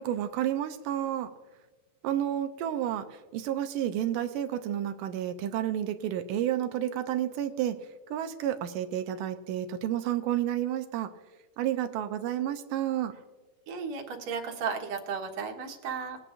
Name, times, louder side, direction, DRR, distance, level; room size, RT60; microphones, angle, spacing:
voice 1, 0.0-1.3 2.0-7.8 8.1-11.1 11.6-13.1, right 11 dB, 90° right, 8 dB, 2.4 m, -30 dB
voice 2, 13.7-16.2, right 5 dB, 60° right, 2 dB, 2.4 m, -34 dB
21.0 x 8.8 x 2.6 m, 1.3 s
omnidirectional pair, 3.7 m